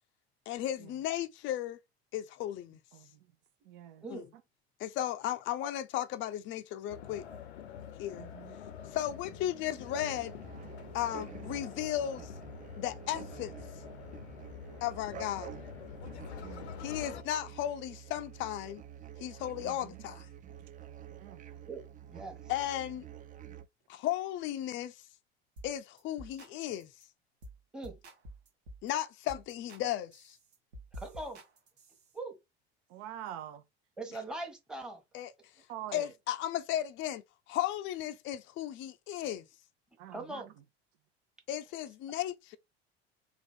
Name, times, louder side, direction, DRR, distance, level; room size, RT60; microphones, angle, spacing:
voice 1, 0.5-1.8 2.1-2.8 4.1-4.3 4.8-7.2 8.0-8.3 8.9-10.3 10.9-12.3 12.8-13.5 14.8-15.5 16.8-18.8 19.2-20.3 22.5-23.0 23.9-24.9 25.6-26.9 28.8-30.4 35.1-35.3 35.9-37.2 37.5-39.5 41.5-42.6, left 12 dB, 35° left, 0.5 m, -35 dB
voice 2, 2.9-3.3 3.6-4.1 8.2-8.6 14.7-14.8 16.4-16.7 19.6-20.1 21.2-21.4 26.2-26.3 32.9-33.7 35.7-36.1 40.0-40.6, right 11 dB, 60° right, 0.8 m, -46 dB
sound 1, 6.9-17.2, left 9 dB, 80° left, 0.7 m, -47 dB
sound 2, 9.6-23.7, right 10 dB, 25° right, 0.5 m, -48 dB
voice 3, 21.7-22.4 27.7-28.0 30.9-31.4 32.1-32.4 34.0-35.0 40.1-40.5, right 2 dB, ahead, 1.1 m, -41 dB
sound 3, 25.6-25.7 26.0-26.5 26.8-27.0 27.4-27.6 27.8-28.9 29.3-29.8 30.1-32.1, equal, 80° right, 1.1 m, -49 dB
3.7 x 2.4 x 3.3 m
figure-of-eight pair, 70°, 32 cm